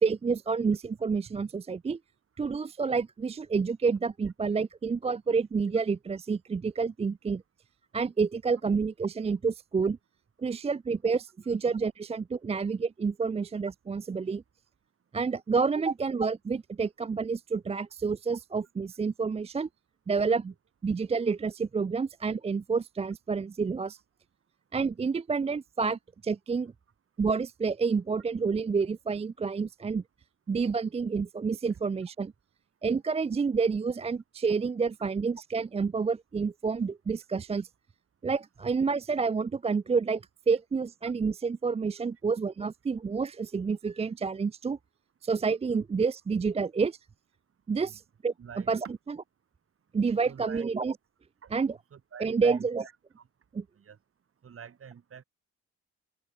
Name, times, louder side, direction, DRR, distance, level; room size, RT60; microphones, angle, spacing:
voice 1, 0.0-2.0 2.4-7.4 7.9-10.0 10.4-14.4 15.1-19.7 20.1-20.5 20.8-24.0 24.7-26.7 27.2-30.0 30.5-32.3 32.8-37.7 38.2-44.8 45.2-47.0 47.7-48.3 48.7-48.8 49.1-49.2 49.9-50.9 51.5-51.8 52.2-52.9 53.5-53.6, right 5 dB, 20° right, 0.5 m, -29 dB
voice 2, 48.4-48.7 50.2-50.6 51.4-52.9 53.2-53.3 53.8-54.0 54.4-55.2, right 7 dB, 45° right, 3.3 m, -47 dB
cardioid pair, 90°, 30 cm